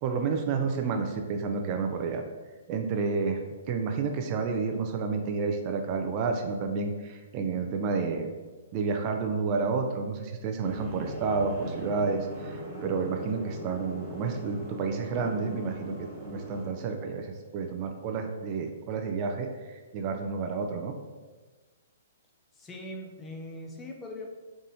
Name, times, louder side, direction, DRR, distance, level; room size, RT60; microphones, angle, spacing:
voice 1, 0.0-2.2 2.7-3.4 3.7-8.3 8.7-20.9, right 4 dB, 35° right, 4 dB, 0.4 m, -30 dB
sound 1, 10.6-16.7, equal, 15° right, 1.2 m, -40 dB
voice 2, 22.5-24.3, left 1 dB, 15° left, 0 dB, 0.6 m, -41 dB
4.0 x 3.5 x 2.7 m, 1.3 s
hypercardioid pair, 135°, 0 cm